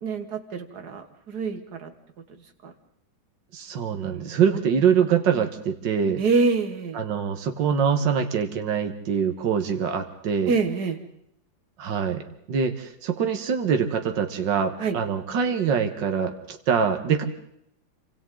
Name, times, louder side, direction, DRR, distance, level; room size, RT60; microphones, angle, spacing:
voice 1, 0.0-1.9 2.6-2.7 4.0-4.6 5.4-5.5 6.2-7.0 10.5-11.0 14.8-15.0, right 4 dB, 55° right, 6 dB, 2.2 m, -26 dB
voice 2, 3.5-6.2 6.9-10.5 11.8-17.2, right 7 dB, 70° right, 6 dB, 2.1 m, -24 dB
28.0 x 25.5 x 3.9 m, 0.74 s
omnidirectional pair, 2.1 m